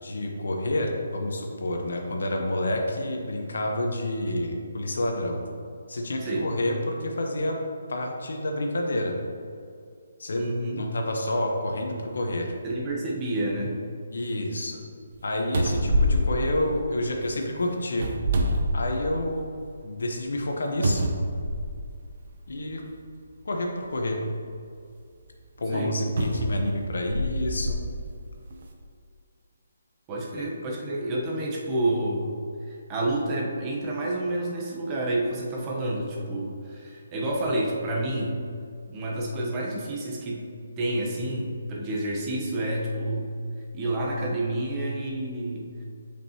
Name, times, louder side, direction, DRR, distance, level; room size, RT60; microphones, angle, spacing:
voice 1, 0.0-5.4 5.9-7.6 7.9-9.1 10.2-10.5 10.8-12.5 14.1-14.8 15.2-18.1 18.7-19.5 19.8-21.0 22.5-22.8 23.4-24.2 25.6-27.8 30.4-30.5, left 1 dB, 75° left, 2 dB, 1.0 m, -28 dB
voice 2, 10.4-10.8 12.6-13.8 25.7-26.0 30.1-32.3 32.7-38.4 38.9-40.5 40.8-43.3 43.7-45.8, right 1 dB, 25° right, -3 dB, 1.0 m, -29 dB
sound 1, 15.1-15.2 15.5-17.2 17.9-19.3 19.8-19.9 20.8-21.9 22.9-23.0 26.2-27.8 28.5-28.6, equal, 55° right, 0.8 m, -26 dB
8.1 x 5.2 x 3.0 m, 2.3 s
hypercardioid pair, 155°, 0 cm